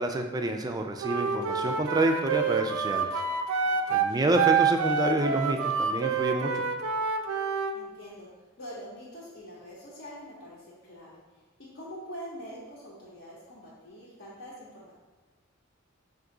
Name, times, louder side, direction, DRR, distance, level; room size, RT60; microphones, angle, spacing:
voice 1, 0.0-3.1 3.9-6.6, right 2 dB, 20° right, 5 dB, 0.3 m, -28 dB
Wind instrument woodwind instrument, 1.0-7.7, right 5 dB, 90° right, 0.4 m, -27 dB
voice 2, 7.7-8.3 8.6-11.2 11.6-14.9, equal, 60° left, -8 dB, 0.9 m, -44 dB
4.8 x 2.6 x 3.8 m, 1.4 s
head